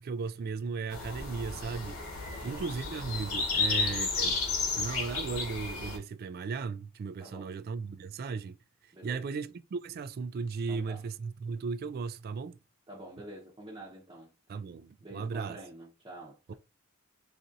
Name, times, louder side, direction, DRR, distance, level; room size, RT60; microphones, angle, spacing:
voice 1, 0.0-2.0 2.4-4.4 4.8-8.6 9.0-12.6 14.5-15.6 16.5-16.6, right 5 dB, 45° right, 0.3 m, -36 dB
sound 1, 0.9-6.0, left 4 dB, 90° left, 1.1 m, -32 dB
voice 2, 2.3-2.7 7.2-7.5 8.9-9.2 10.7-11.0 12.9-14.3 15.0-16.5, right 1 dB, 20° right, 0.8 m, -47 dB
4.1 x 2.6 x 2.4 m
head